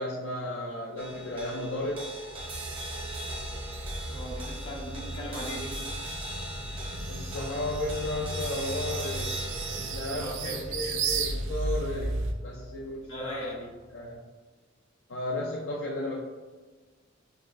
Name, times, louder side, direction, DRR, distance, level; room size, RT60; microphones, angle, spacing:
voice 1, 0.0-2.1 7.1-9.4 9.7-13.5 13.9-14.2 15.1-16.2, left 1 dB, 65° left, -3 dB, 0.4 m, -34 dB
sound 1, 1.0-13.5, right 1 dB, 25° right, 0.7 m, -41 dB
sound 2, 2.3-12.3, right 3 dB, 65° right, 0.4 m, -35 dB
voice 2, 4.1-5.9 10.1-11.1 13.1-13.8, equal, 85° left, -5 dB, 1.1 m, -39 dB
5.9 x 2.0 x 2.5 m, 1.3 s
head